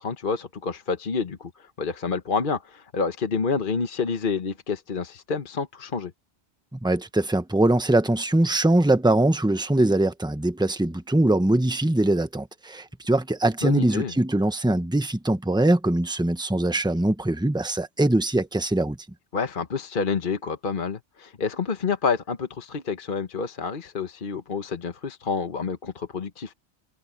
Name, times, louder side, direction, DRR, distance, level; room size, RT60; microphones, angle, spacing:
voice 1, 0.0-1.5 1.8-6.1 13.6-14.1 19.3-26.5, left 5 dB, 50° left, 1.2 m, -28 dB
voice 2, 6.7-19.0, right 1 dB, 5° right, 1.1 m, -22 dB
omnidirectional pair, 1.1 m